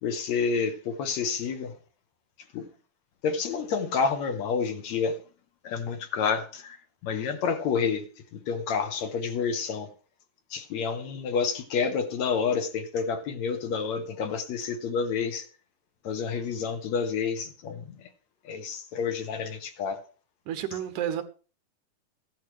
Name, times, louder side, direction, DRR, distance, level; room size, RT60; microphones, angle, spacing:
voice 1, 0.0-1.7 2.5-2.7 3.2-5.2 5.6-6.8 7.0-8.1 8.3-9.9 10.5-15.5 16.0-18.0 18.4-20.0, left 5 dB, 65° left, 2.1 m, -29 dB
voice 2, 20.5-21.2, right 10 dB, 75° right, 2.3 m, -30 dB
15.0 x 10.5 x 3.2 m
omnidirectional pair, 3.7 m